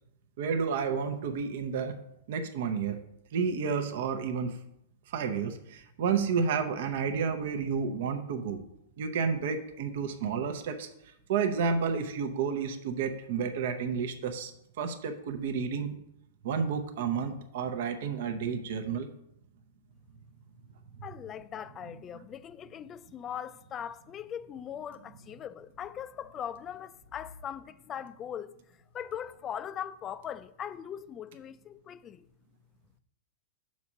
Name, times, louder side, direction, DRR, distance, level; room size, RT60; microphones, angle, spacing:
voice 1, 0.4-1.9 2.3-3.0 3.3-4.6 5.1-8.6 9.0-10.9 11.3-14.5 14.8-16.0 16.4-19.1, right 6 dB, 65° right, 0.7 m, -31 dB
voice 2, 21.0-28.5 28.9-32.2, left 9 dB, 25° left, 0.3 m, -40 dB
6.0 x 4.2 x 6.1 m
hypercardioid pair, 130°, 0 cm